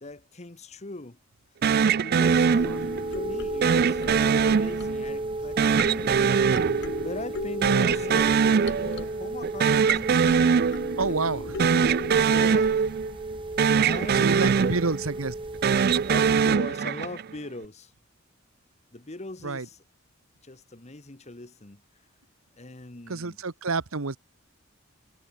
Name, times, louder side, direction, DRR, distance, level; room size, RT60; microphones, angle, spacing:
voice 1, 0.0-1.2 1.8-6.5 7.0-10.6 11.1-11.5 12.2-12.9 13.8-14.8 16.1-17.9 18.9-19.8 20.4-21.8 22.6-23.4, left 2 dB, 35° left, 1.3 m, -41 dB
sound 1, 1.6-3.1 3.6-5.2 5.6-7.4 7.6-9.1 9.4-11.1 11.5-13.3 13.6-15.2 15.5-17.3, right 6 dB, 50° right, 0.4 m, -22 dB
sound 2, 2.2-16.3, right 2 dB, 25° right, 0.9 m, -34 dB
sound 3, 2.6-12.8, left 4 dB, 55° left, 0.7 m, -38 dB
voice 2, 11.0-11.7 14.1-15.3 19.4-19.7 23.1-24.2, right 4 dB, 85° right, 1.2 m, -29 dB
head